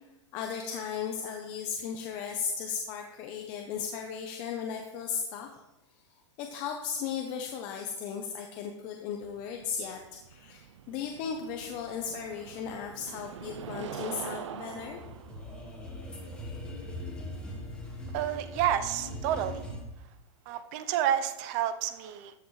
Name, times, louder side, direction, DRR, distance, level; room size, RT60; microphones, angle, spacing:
voice 1, 0.3-5.5 6.4-10.0 10.3-15.0, left 7 dB, 30° left, 3 dB, 0.8 m, -36 dB
sound 1, 9.2-18.1, right 9 dB, 75° right, 0.7 m, -44 dB
sound 2, 14.7-19.8, left 1 dB, 5° left, 1.4 m, -40 dB
voice 2, 18.1-19.6 20.5-22.3, right 10 dB, 35° right, 11 dB, 0.7 m, -29 dB
13.5 x 7.9 x 3.2 m, 0.97 s
supercardioid pair, 160°, 15 cm